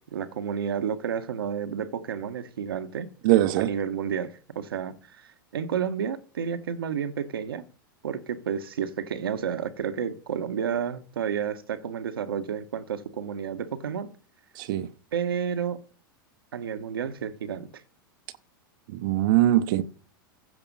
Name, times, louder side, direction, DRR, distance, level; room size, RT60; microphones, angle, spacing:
voice 1, 0.0-3.1 3.6-7.6 8.0-14.1 15.1-15.8 16.5-17.7, right 7 dB, 90° right, 1.3 m, -31 dB
voice 2, 3.2-3.7 14.6-14.9 18.9-19.8, right 14 dB, 65° right, 0.9 m, -21 dB
15.5 x 6.0 x 5.5 m
hypercardioid pair, 110°, 12 cm